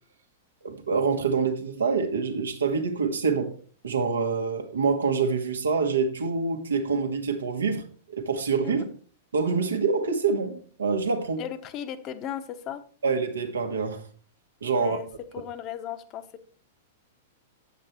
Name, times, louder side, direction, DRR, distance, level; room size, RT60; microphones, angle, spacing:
voice 1, 0.6-3.5 3.8-7.8 8.1-8.8 9.3-11.4 13.0-14.0 14.6-15.0, right 5 dB, 70° right, 1.6 m, -26 dB
voice 2, 11.4-12.8 14.8-15.1 15.3-16.4, left 10 dB, 35° left, 1.1 m, -36 dB
9.1 x 7.8 x 4.4 m
figure-of-eight pair, 100°, 0 cm